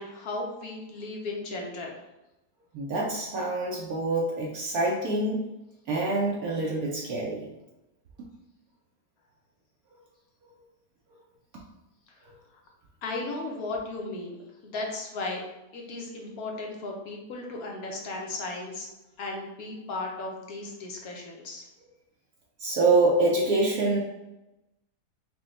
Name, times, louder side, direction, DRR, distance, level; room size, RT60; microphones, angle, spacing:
voice 1, 0.0-2.0 13.0-14.4 14.6-15.4 15.7-18.9 19.2-21.6, left 2 dB, 65° left, 0 dB, 1.1 m, -35 dB
voice 2, 2.7-5.4 5.9-7.5 22.6-24.0, right 2 dB, 70° right, -2 dB, 1.0 m, -25 dB
4.8 x 2.3 x 3.1 m, 0.96 s
omnidirectional pair, 1.7 m